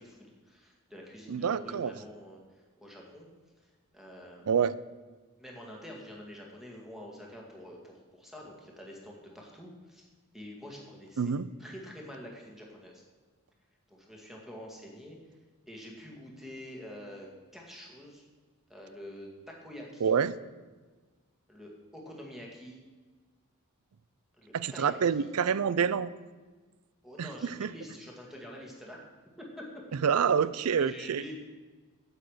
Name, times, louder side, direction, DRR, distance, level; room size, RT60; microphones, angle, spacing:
voice 1, 0.0-3.3 3.6-4.5 5.4-10.1 10.3-11.3 11.6-13.0 13.9-15.2 15.7-18.2 18.7-20.2 21.5-22.8 24.4-25.3 27.0-29.0 29.4-29.8 30.7-31.3, equal, ahead, -1 dB, 2.0 m, -47 dB
voice 2, 1.3-1.9 4.5-4.8 11.2-11.5 20.0-20.4 24.5-26.1 27.2-27.7 30.0-31.2, right 7 dB, 75° right, 17 dB, 0.4 m, -27 dB
8.3 x 8.2 x 6.4 m, 1.3 s
head